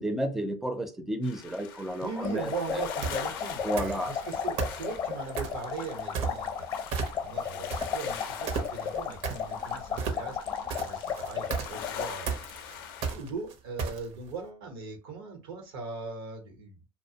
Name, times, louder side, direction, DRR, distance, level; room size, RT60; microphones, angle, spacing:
voice 1, 0.0-2.8 3.6-4.1, right 1 dB, 5° right, 0.4 m, -32 dB
sound 1, 1.2-13.1, left 8 dB, 90° left, 0.4 m, -44 dB
voice 2, 2.0-6.7 7.2-10.4 10.6-16.8, right 4 dB, 90° right, 0.9 m, -39 dB
sound 2, 2.1-12.1, left 7 dB, 40° left, 0.6 m, -35 dB
sound 3, 3.0-3.3 3.8-4.2 4.6-5.6 6.1-6.6 6.9-7.4 7.7-14.3, right 5 dB, 55° right, 0.6 m, -33 dB
2.4 x 2.1 x 2.7 m
supercardioid pair, 120°, 12 cm